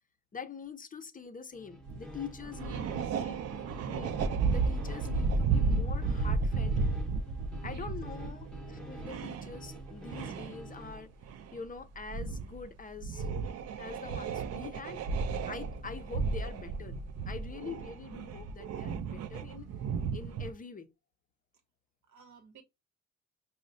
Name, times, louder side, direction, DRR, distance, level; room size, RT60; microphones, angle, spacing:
voice 1, 0.3-3.4 3.9-6.9 7.6-11.1 11.5-13.3 13.8-15.0 15.5-17.0 17.3-19.7 20.1-20.9, left 5 dB, 30° left, 0.5 m, -44 dB
sound 1, 1.5-11.1, right 1 dB, 5° left, 0.8 m, -47 dB
sound 2, 1.9-2.1 2.4-10.9 11.2-11.6 12.1-12.6 13.0-20.5, right 4 dB, 55° right, 0.4 m, -33 dB
voice 2, 2.5-3.2 7.6-7.9 22.1-22.6, right 6 dB, 75° right, 1.0 m, -53 dB
5.1 x 2.1 x 2.5 m
cardioid pair, 90°, 30 cm